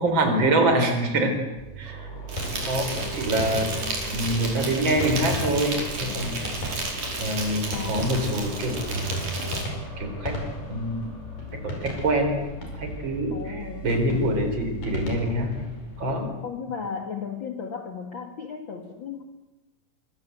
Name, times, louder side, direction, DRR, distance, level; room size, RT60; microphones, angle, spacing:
voice 1, 0.0-1.3 1.8-2.1 2.5-2.9 3.1-3.7 4.1-6.7 7.2-9.2 10.0-10.4 10.6-11.2 11.6-12.4 12.7-15.5 15.8-16.3, right 1 dB, 35° right, 5 dB, 4.9 m, -25 dB
sound 1, 1.6-15.5, equal, 20° left, 4.5 m, -40 dB
sound 2, 2.2-16.2, equal, 85° left, 6.9 m, -37 dB
Insect, 2.3-9.6, right 2 dB, 65° right, 6.4 m, -32 dB
voice 2, 7.7-8.2 13.3-13.9 16.4-19.2, left 6 dB, 40° left, 4 dB, 2.2 m, -35 dB
26.0 x 24.0 x 8.1 m, 1.1 s
omnidirectional pair, 3.7 m